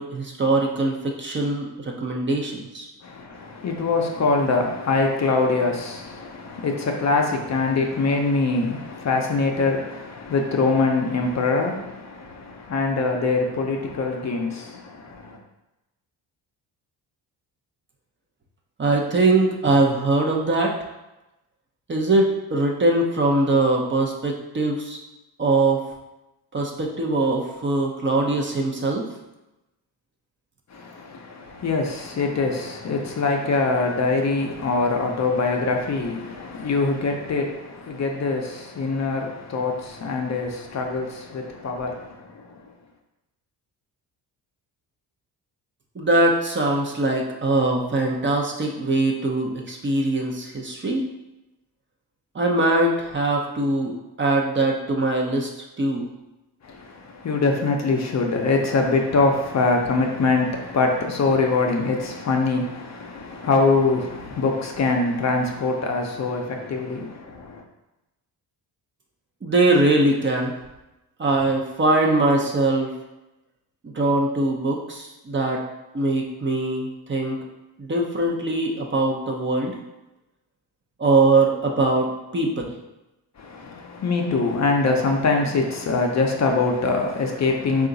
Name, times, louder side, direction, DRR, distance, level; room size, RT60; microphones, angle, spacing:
voice 1, 0.0-2.9 18.8-20.7 21.9-25.0 25.4-25.9 26.5-29.0 45.9-51.1 52.3-55.5 55.8-56.1 69.4-70.6 71.2-72.9 73.8-75.6 75.9-77.4 77.8-79.8 81.0-82.7, right 2 dB, 30° right, 0.7 m, -22 dB
voice 2, 3.0-15.4 30.7-42.6 56.6-67.6 83.4-87.9, left 3 dB, 40° left, 0.6 m, -23 dB
3.7 x 2.4 x 3.9 m
cardioid pair, 75°, 41 cm